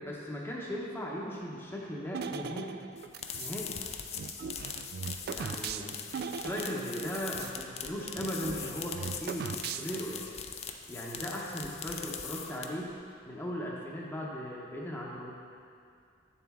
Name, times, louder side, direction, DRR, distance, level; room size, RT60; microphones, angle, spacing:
voice 1, 0.0-2.8 3.4-3.8 5.3-5.9 6.2-10.3 10.9-12.9 13.3-15.3, equal, 10° left, -4 dB, 0.8 m, -38 dB
sound 1, 2.1-3.6 4.2-7.6 7.8-7.9 8.2-10.1, right 6 dB, 50° right, 0.3 m, -39 dB
sound 2, 3.0-12.9, left 7 dB, 30° left, 0.5 m, -41 dB
8.8 x 7.2 x 3.6 m, 2.4 s
head